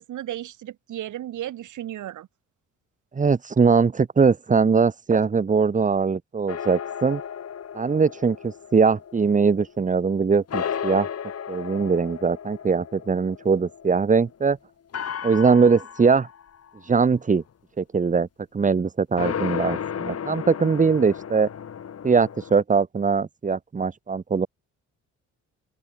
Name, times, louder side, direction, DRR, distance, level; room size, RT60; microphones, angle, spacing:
voice 1, 0.0-2.3, right 12 dB, 75° right, 6.6 m, -34 dB
voice 2, 3.1-7.2 7.7-11.1 11.5-14.6 15.2-16.3 16.9-17.4 17.8-18.3 18.5-21.5 22.0-24.5, right 5 dB, 25° right, 1.1 m, -21 dB
sound 1, 6.5-10.1 10.5-14.3 14.9-16.8 19.2-22.6, left 8 dB, 55° left, 5.5 m, -34 dB
open air
cardioid pair, 90°, 30 cm